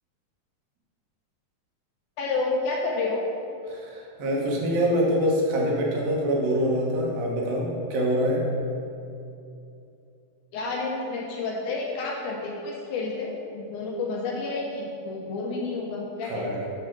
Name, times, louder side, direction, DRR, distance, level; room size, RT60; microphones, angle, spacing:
voice 1, 2.2-3.3 10.5-16.7, left 3 dB, 75° left, -2 dB, 2.0 m, -30 dB
voice 2, 3.7-8.5 16.3-16.7, equal, 80° right, -3 dB, 3.0 m, -25 dB
9.6 x 3.6 x 5.9 m, 2.6 s
omnidirectional pair, 4.0 m